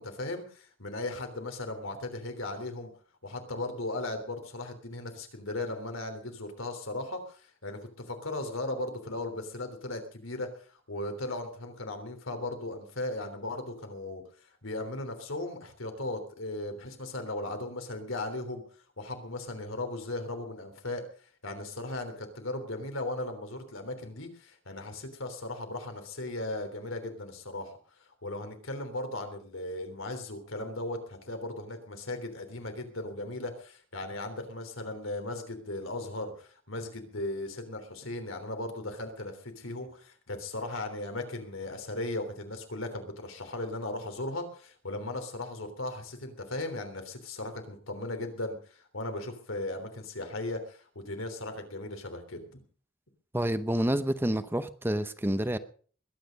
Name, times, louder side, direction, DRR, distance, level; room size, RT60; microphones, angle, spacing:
voice 1, 0.0-2.9 3.2-7.8 8.1-10.5 10.9-14.2 14.6-18.6 19.0-21.0 21.4-27.8 28.2-52.6, left 2 dB, 90° left, 6 dB, 3.4 m, -37 dB
voice 2, 53.3-55.6, right 1 dB, 10° right, 11 dB, 0.8 m, -28 dB
21.5 x 9.3 x 5.3 m, 0.44 s
head